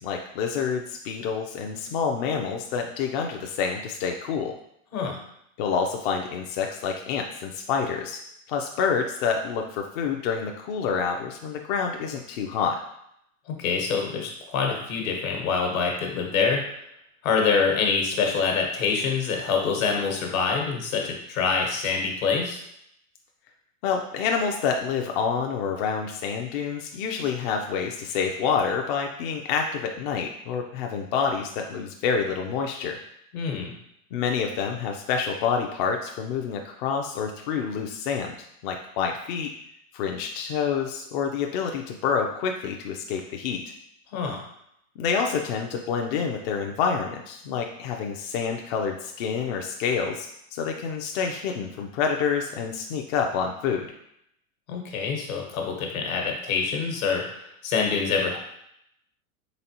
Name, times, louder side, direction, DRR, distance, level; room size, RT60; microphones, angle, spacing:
voice 1, 0.0-4.5 5.6-8.2 8.5-12.8 23.8-33.0 34.1-39.5 39.9-43.6 45.0-53.9, left 6 dB, 45° left, 2 dB, 0.4 m, -28 dB
voice 2, 13.5-16.6 17.2-22.6 33.3-33.7 44.1-44.4 54.7-58.4, left 5 dB, 70° left, 1 dB, 1.3 m, -25 dB
4.0 x 3.8 x 2.8 m, 0.75 s
hypercardioid pair, 130°, 42 cm